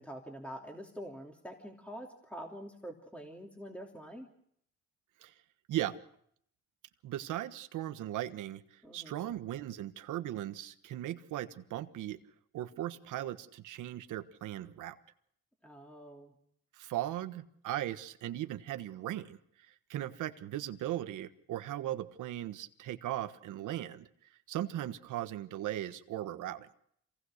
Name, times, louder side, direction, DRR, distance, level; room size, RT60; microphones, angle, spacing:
voice 1, 0.0-4.3 8.8-9.3 15.6-16.3, equal, 5° left, 0 dB, 3.1 m, -46 dB
voice 2, 7.0-12.2 12.5-15.0 16.7-19.4 19.7-24.1 24.5-26.7, right 13 dB, 85° right, 10 dB, 1.3 m, -38 dB
27.0 x 18.0 x 6.6 m, 0.69 s
cardioid pair, 90°, 30 cm